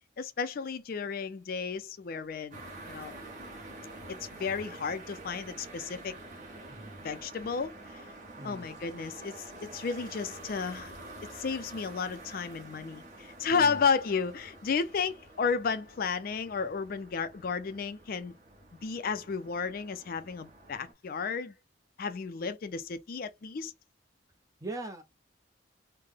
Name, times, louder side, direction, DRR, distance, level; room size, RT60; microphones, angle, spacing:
voice 1, 0.2-2.6 2.9-3.1 4.1-6.1 7.0-8.0 8.4-10.9 11.3-18.3 18.8-21.5 22.0-23.7, left 5 dB, 50° left, 0.4 m, -33 dB
sound 1, 2.5-20.9, right 2 dB, 45° right, 1.2 m, -48 dB
voice 2, 6.7-7.0 8.4-8.7 13.5-13.9 24.6-25.0, right 2 dB, 20° right, 0.5 m, -41 dB
3.3 x 2.1 x 3.5 m
head